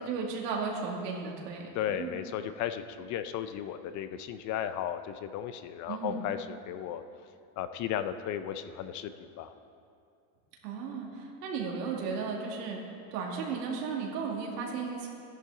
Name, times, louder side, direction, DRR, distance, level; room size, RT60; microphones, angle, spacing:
voice 1, 0.0-2.2 5.9-6.2 10.6-12.8 13.1-15.1, right 5 dB, 85° right, -1 dB, 2.3 m, -35 dB
voice 2, 1.7-7.0 7.6-9.1 9.4-9.5, left 10 dB, 40° left, 11 dB, 0.5 m, -35 dB
13.5 x 10.5 x 3.8 m, 2.5 s
supercardioid pair, 125°, 47 cm